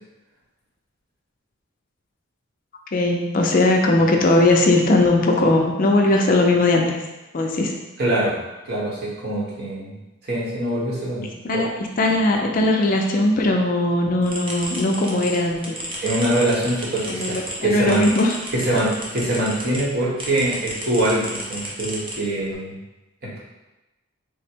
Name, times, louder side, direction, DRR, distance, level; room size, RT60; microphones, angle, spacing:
voice 1, 2.9-7.0 7.3-7.7 11.4-15.8 17.1-18.3, left 2 dB, 40° left, 2 dB, 0.4 m, -19 dB
voice 2, 8.0-8.3 8.6-9.9 10.3-11.3 11.5-11.6 16.0-18.0 18.5-22.8 23.2-23.4, right 1 dB, 50° right, -5 dB, 1.0 m, -23 dB
sound 1, 14.2-19.8 20.2-22.5, right 1 dB, 25° right, 0.6 m, -33 dB
3.5 x 2.1 x 4.3 m, 1.0 s
head